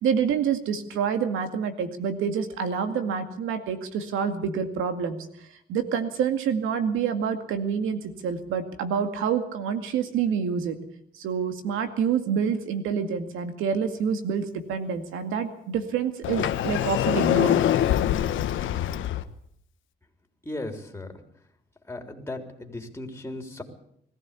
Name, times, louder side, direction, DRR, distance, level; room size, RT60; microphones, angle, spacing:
voice 1, 0.0-5.3 5.7-10.8 11.2-17.6, right 7 dB, 85° right, 8 dB, 2.2 m, -27 dB
Sliding door, 16.2-19.2, left 11 dB, 75° left, 1.2 m, -24 dB
voice 2, 20.4-21.1 21.9-23.6, left 2 dB, 10° left, 4 dB, 3.7 m, -36 dB
20.5 x 15.0 x 8.4 m, 0.70 s
cardioid pair, 90°, 20 cm